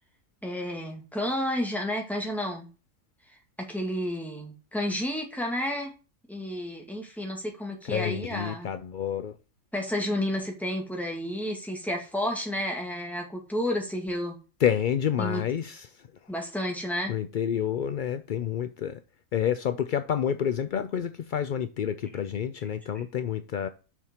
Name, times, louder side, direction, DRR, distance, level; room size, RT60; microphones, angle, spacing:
voice 1, 0.4-2.7 3.3-5.9 6.3-8.7 9.7-14.4 15.2-15.4 16.3-17.1 22.9-23.0, left 1 dB, ahead, 2.1 m, -31 dB
voice 2, 7.8-9.4 14.6-16.1 17.1-19.0 19.3-23.7, left 9 dB, 65° left, 0.4 m, -29 dB
7.1 x 5.7 x 4.4 m
omnidirectional pair, 1.4 m